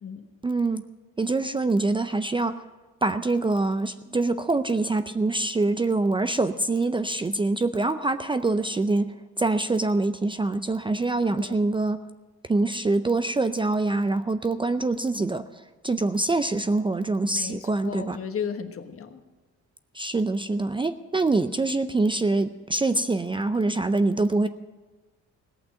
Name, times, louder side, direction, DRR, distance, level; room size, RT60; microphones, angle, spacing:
voice 1, 0.4-0.8 1.2-2.6 3.0-12.0 12.4-18.2 19.9-24.5, right 2 dB, 15° right, 11 dB, 0.5 m, -25 dB
voice 2, 17.3-19.2, left 7 dB, 45° left, 8 dB, 1.3 m, -34 dB
17.5 x 6.0 x 9.1 m, 1.3 s
cardioid pair, 90°, 30 cm